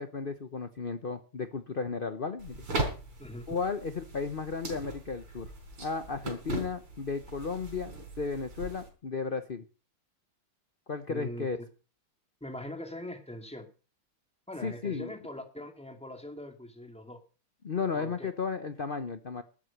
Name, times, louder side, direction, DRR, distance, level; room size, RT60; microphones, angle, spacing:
voice 1, 0.0-2.6 3.5-5.5 5.8-9.6 10.9-11.6 14.6-15.1 17.6-19.4, left 5 dB, 60° left, 10 dB, 0.5 m, -34 dB
sound 1, 2.4-8.9, right 2 dB, 85° right, 4.8 m, -39 dB
voice 2, 11.1-11.6 12.4-13.7 14.5-17.2 17.9-18.3, left 1 dB, 5° left, 4 dB, 2.3 m, -42 dB
12.0 x 8.2 x 7.8 m, 0.36 s
omnidirectional pair, 2.4 m